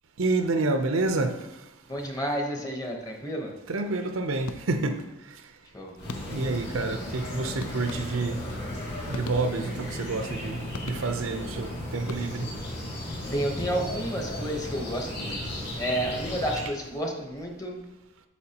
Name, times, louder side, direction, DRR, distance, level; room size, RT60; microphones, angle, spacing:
voice 1, 0.2-1.6 3.7-5.5 6.3-8.4 9.1-12.5, right 3 dB, 80° right, 0.7 m, -29 dB
voice 2, 1.9-3.5 5.7-5.9 13.3-15.4 15.8-17.8, right 1 dB, 15° left, 1.0 m, -31 dB
sound 1, 4.5-5.0 6.1-6.6 7.6-8.5 9.1-9.9 10.7-11.4 12.0-12.6, left 3 dB, 90° left, 0.5 m, -41 dB
sound 2, 6.0-16.7, left 1 dB, 55° left, 2.4 m, -35 dB
8.4 x 7.2 x 2.9 m
head